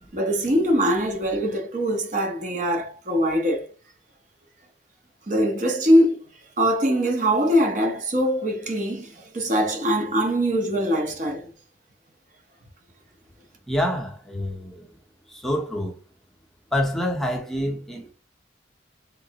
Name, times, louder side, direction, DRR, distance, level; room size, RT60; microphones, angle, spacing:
voice 1, 0.1-3.7 5.3-6.2 6.6-11.4, equal, 45° right, 0.8 m, -22 dB
voice 2, 13.7-14.9 15.3-16.0 16.7-18.1, equal, ahead, 0.7 m, -27 dB
3.9 x 3.2 x 2.8 m
head